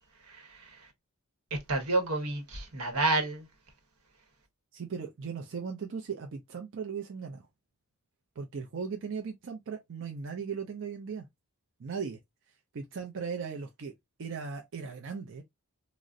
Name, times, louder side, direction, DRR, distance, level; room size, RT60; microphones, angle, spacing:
voice 1, 0.3-0.9 1.7-3.4, right 2 dB, 90° right, 1.0 m, -30 dB
voice 2, 4.7-7.5 8.4-11.3 11.8-12.2 12.7-13.9 14.2-15.4, right 6 dB, 55° right, 0.5 m, -37 dB
3.7 x 2.0 x 2.4 m
head